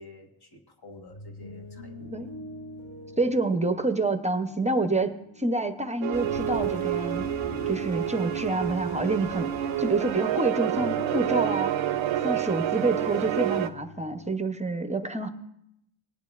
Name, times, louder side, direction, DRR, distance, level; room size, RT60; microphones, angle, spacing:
voice 1, 0.0-2.1, left 2 dB, 50° left, 3 dB, 1.6 m, -49 dB
sound 1, 0.9-14.3, left 1 dB, 75° left, 2.5 m, -44 dB
voice 2, 3.2-5.1 5.4-7.2 7.7-11.9 12.2-15.3, right 2 dB, 15° right, 8 dB, 0.7 m, -27 dB
sound 2, 6.0-13.7, right 12 dB, 70° right, 0.5 m, -28 dB
sound 3, 6.1-13.7, left 1 dB, 35° left, 1.0 m, -46 dB
19.5 x 10.5 x 2.4 m, 0.79 s
cardioid pair, 95°, 49 cm